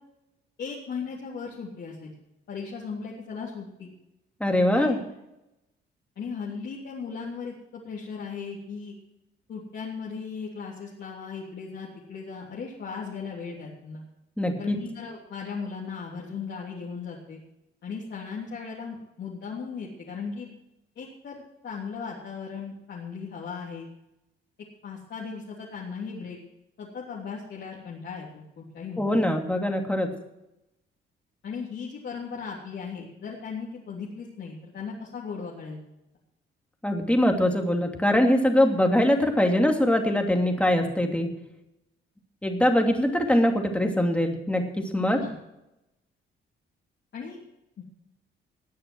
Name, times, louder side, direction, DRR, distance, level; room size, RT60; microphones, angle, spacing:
voice 1, 0.6-2.1 2.5-3.9 4.7-5.0 6.2-9.0 9.5-14.0 14.6-17.4 17.8-20.5 20.9-23.9 24.8-26.4 26.8-29.3 31.4-35.8 45.0-45.3 47.1-47.4 47.8-47.9, left 5 dB, 60° left, -4 dB, 3.2 m, -37 dB
voice 2, 4.4-5.0 14.4-14.8 29.0-30.1 36.8-41.3 42.4-45.2, left 1 dB, 5° left, 3 dB, 2.7 m, -23 dB
20.0 x 6.7 x 6.3 m, 0.88 s
cardioid pair, 90°, 20 cm